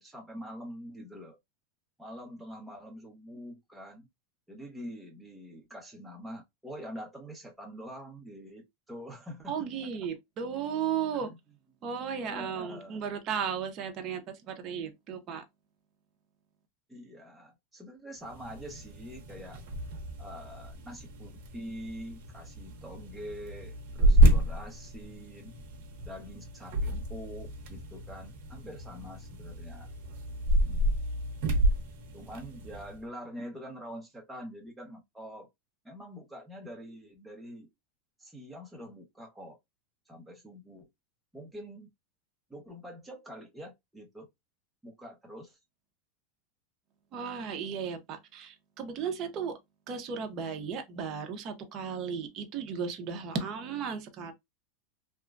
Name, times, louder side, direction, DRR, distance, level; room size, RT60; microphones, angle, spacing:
voice 1, 0.0-1.4 2.0-4.1 4.5-9.6 11.1-11.4 12.2-13.0 16.9-19.6 20.2-25.5 26.0-29.9 32.1-35.5 35.8-37.7 38.2-39.6 40.1-40.9 41.3-41.9 42.5-44.3 44.8-45.6, equal, 5° right, 0.8 m, -45 dB
voice 2, 9.5-11.3 11.8-15.4 47.1-49.6 49.9-54.3, right 7 dB, 35° right, 0.6 m, -35 dB
sound 1, 18.2-33.0, right 1 dB, 65° right, 0.8 m, -30 dB
2.9 x 2.2 x 2.4 m
supercardioid pair, 140°, 0 cm